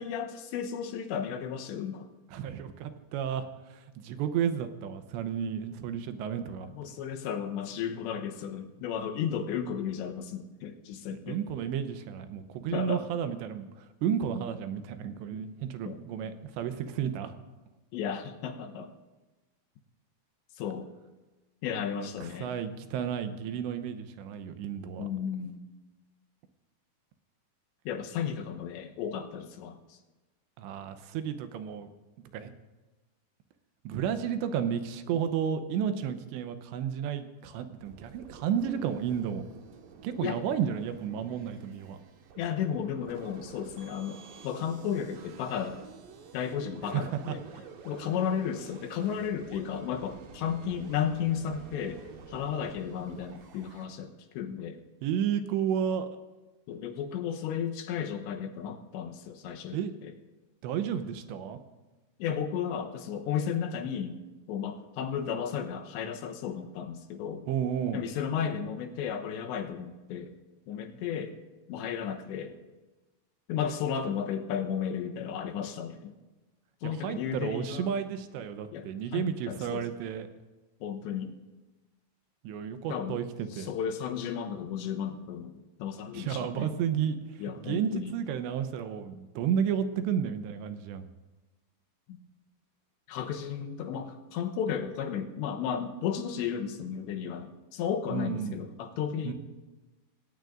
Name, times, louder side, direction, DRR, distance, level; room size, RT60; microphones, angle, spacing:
voice 1, 0.0-2.1 6.6-11.4 12.7-13.0 15.9-16.0 17.9-18.9 20.6-20.9 21.6-22.5 25.0-25.6 27.9-30.0 40.2-40.4 42.4-45.9 46.3-47.4 47.8-54.8 56.7-60.1 62.2-64.2 64.5-67.4 67.9-70.3 70.7-71.3 71.7-72.6 73.5-76.1 76.8-77.9 78.7-79.9 80.8-81.3 82.9-83.2 83.5-85.5 85.8-86.7 87.4-88.1 92.1-92.2 93.1-99.3, left 8 dB, 80° left, 4 dB, 3.2 m, -34 dB
voice 2, 2.3-6.9 11.1-17.3 21.9-25.1 30.6-31.9 32.3-32.5 33.8-39.4 40.0-42.0 46.8-47.4 55.0-56.1 59.7-59.9 60.6-61.6 67.5-68.0 76.8-80.3 82.4-83.7 86.1-87.2 87.6-91.1 98.1-98.6 99.2-99.3, right 8 dB, 80° right, 9 dB, 3.0 m, -32 dB
sound 1, 37.8-53.9, right 6 dB, 65° right, 2.5 m, -50 dB
26.5 x 18.5 x 2.6 m, 1.2 s
omnidirectional pair, 5.2 m